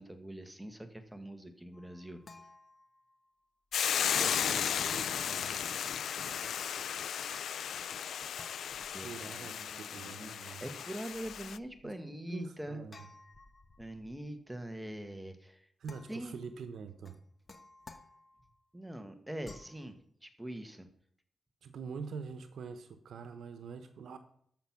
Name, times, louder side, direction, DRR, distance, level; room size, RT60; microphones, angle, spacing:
voice 1, 0.0-2.2 8.9-12.8 13.8-15.6 16.1-16.3 18.7-19.9 20.2-20.9, right 1 dB, 5° right, 7 dB, 1.3 m, -43 dB
sound 1, 1.7-3.3 4.7-6.1 8.3-9.4 10.7-11.8 12.9-14.3 15.8-16.5 17.0-18.6 19.4-19.9, left 3 dB, 35° left, 1.0 m, -56 dB
Hiss / Boiling, 3.7-11.6, left 8 dB, 85° left, 0.3 m, -35 dB
voice 2, 4.2-5.6 8.8-10.7 11.8-13.1 15.8-17.2 21.6-24.2, right 5 dB, 85° right, 9 dB, 0.9 m, -45 dB
13.0 x 6.0 x 5.9 m, 0.65 s
wide cardioid pair, 110°, 0 cm